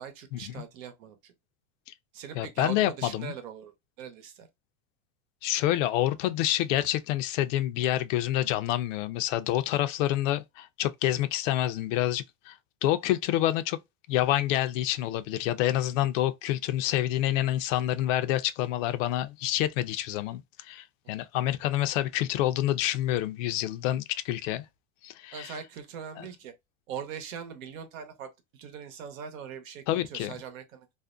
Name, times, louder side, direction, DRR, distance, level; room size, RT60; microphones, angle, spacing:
voice 1, 0.0-1.3 2.1-4.5 25.3-26.5 26.9-30.9, right 8 dB, 80° right, 0.9 m, -41 dB
voice 2, 2.3-3.4 5.4-12.5 12.8-13.8 14.1-24.6 25.0-25.5 29.9-30.3, left 13 dB, 70° left, 0.5 m, -27 dB
2.5 x 2.1 x 2.4 m
supercardioid pair, 130°, 40 cm